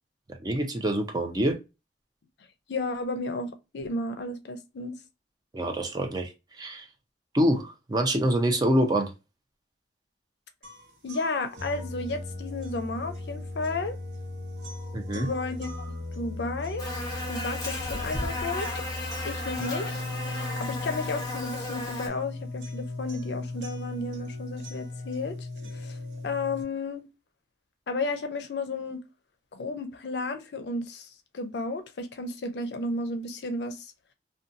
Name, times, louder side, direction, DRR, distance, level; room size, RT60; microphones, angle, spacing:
voice 1, 0.4-1.6 5.5-6.9 7.3-9.1 14.9-15.3, right 1 dB, 20° right, 0.4 m, -26 dB
voice 2, 2.7-5.0 11.0-14.0 15.1-15.7 16.2-16.9 17.3-18.8 19.2-20.0 20.6-25.5 25.7-26.0 26.2-27.0 27.9-29.0 29.5-31.1 31.3-33.9, left 3 dB, 65° left, 0.5 m, -33 dB
sound 1, 10.6-26.6, left 2 dB, 90° right, 1.0 m, -37 dB
Buzz, 16.8-22.1, left 1 dB, 20° left, 0.8 m, -34 dB
2.6 x 2.2 x 2.5 m
head